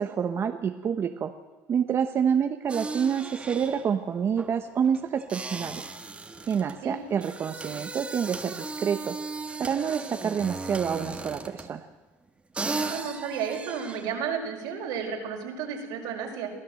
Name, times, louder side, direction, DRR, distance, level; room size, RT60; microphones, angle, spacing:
voice 1, 0.0-1.3 1.7-5.8 6.5-9.2 9.6-11.9, right 7 dB, 40° right, 7 dB, 1.0 m, -27 dB
sound 1, 2.7-11.8 12.3-12.4 12.5-14.2, right 3 dB, 15° right, 1.8 m, -37 dB
voice 2, 12.7-16.5, right 7 dB, 80° right, 2 dB, 4.9 m, -32 dB
23.5 x 15.0 x 7.8 m, 1.2 s
cardioid pair, 120°, 7 cm